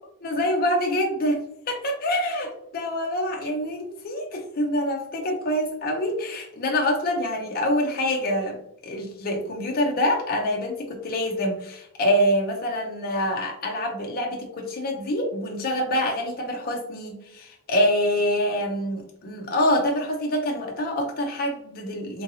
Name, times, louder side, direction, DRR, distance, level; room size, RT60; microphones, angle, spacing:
voice 1, 0.2-1.4 1.7-2.5 2.7-8.6 8.8-22.2, left 1 dB, 40° left, 1 dB, 0.5 m, -25 dB
3.7 x 2.7 x 2.7 m, 0.77 s
head